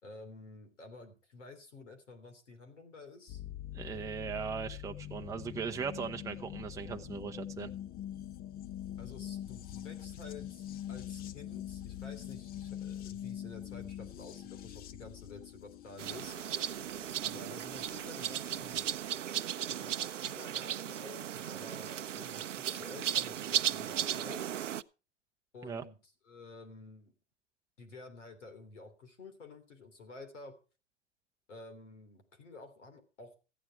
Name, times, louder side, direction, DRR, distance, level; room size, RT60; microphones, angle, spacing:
voice 1, 0.0-3.4 9.0-16.4 17.2-18.8 19.7-24.5 25.5-26.0 26.2-27.1 27.8-30.5 31.5-33.4, left 3 dB, 80° left, 8 dB, 3.2 m, -51 dB
sound 1, 3.3-20.3 21.5-21.6, left 11 dB, 25° left, 0.7 m, -44 dB
voice 2, 3.7-7.7 25.6-25.8, right 6 dB, 10° right, 5 dB, 0.7 m, -39 dB
sound 2, 16.0-24.8, right 10 dB, 80° right, 0.6 m, -36 dB
14.5 x 9.5 x 4.6 m, 0.33 s
hypercardioid pair, 105°, 36 cm